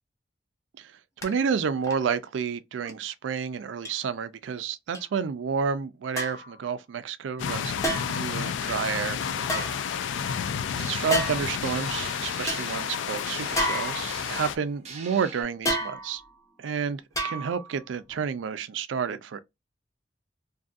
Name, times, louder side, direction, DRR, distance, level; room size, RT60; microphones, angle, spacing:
sound 1, 1.2-1.3 1.8-2.1 2.8-2.9 3.8-3.9 4.9-5.0 6.2-6.5 7.8-8.3 9.4-10.3 11.1-11.6 12.0-12.1 12.5-12.6 13.5-14.4 15.7-16.3 17.1-17.7 18.1-18.2, equal, 15° left, 0.6 m, -30 dB
voice 1, 1.2-9.7 10.8-16.2 16.6-19.4, right 6 dB, 90° right, 0.4 m, -30 dB
sound 2, 7.4-14.6, left 7 dB, 80° left, 0.3 m, -31 dB
sound 3, 10.7-15.4, right 5 dB, 40° right, 0.7 m, -44 dB
2.6 x 2.5 x 2.4 m
head